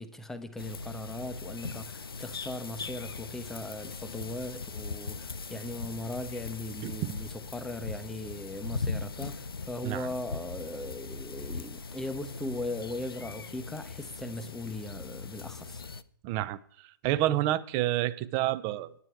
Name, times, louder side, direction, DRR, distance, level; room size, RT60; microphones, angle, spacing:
voice 1, 0.0-15.8, left 1 dB, 5° left, 0.8 m, -39 dB
sound 1, 0.6-16.0, left 4 dB, 85° left, 0.6 m, -40 dB
voice 2, 16.2-16.6 17.0-18.9, right 14 dB, 30° right, 0.5 m, -29 dB
9.8 x 9.7 x 4.6 m
figure-of-eight pair, 125°, 12 cm